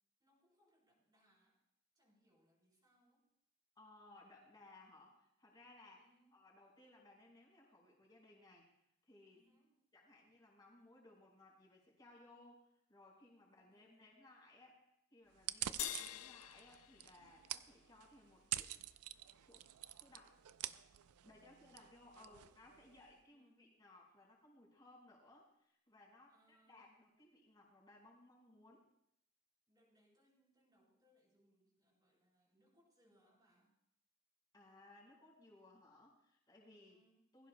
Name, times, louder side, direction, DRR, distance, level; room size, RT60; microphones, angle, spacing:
voice 1, 0.2-1.6 1.9-3.2 5.9-6.5 9.3-9.8 13.4-14.2 15.5-16.1 21.3-21.6 22.1-22.6 23.2-23.7 26.3-27.2 29.7-33.8 36.6-37.3, equal, 20° right, -4 dB, 4.1 m, -75 dB
voice 2, 3.7-8.7 9.0-9.5 9.9-14.8 15.1-18.8 19.4-19.7 20.0-20.4 21.2-28.8 34.5-37.0 37.3-37.5, left 2 dB, 20° left, -3 dB, 4.8 m, -63 dB
sound 1, 15.4-23.1, right 13 dB, 90° right, 0.4 m, -48 dB
sound 2, 15.8-18.4, left 15 dB, 80° left, 0.4 m, -47 dB
20.5 x 15.5 x 2.2 m, 0.76 s
head